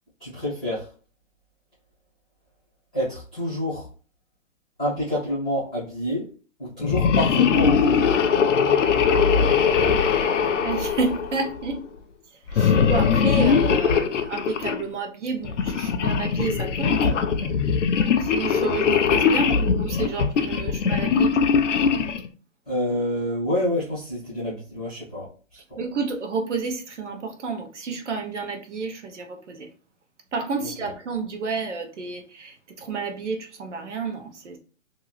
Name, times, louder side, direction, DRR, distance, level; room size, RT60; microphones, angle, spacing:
voice 1, 0.2-0.9 2.9-3.9 4.8-6.3 6.6-8.1 22.6-25.8 30.6-30.9, left 1 dB, 5° right, 0.5 m, -28 dB
sound 1, 6.8-11.6 12.5-14.8 15.4-22.3, left 6 dB, 65° left, 0.5 m, -21 dB
voice 2, 10.6-11.8 12.5-17.1 18.2-21.6 25.8-29.7 30.3-34.6, right 4 dB, 65° right, 0.9 m, -30 dB
2.7 x 2.4 x 3.2 m
hypercardioid pair, 160°, 39 cm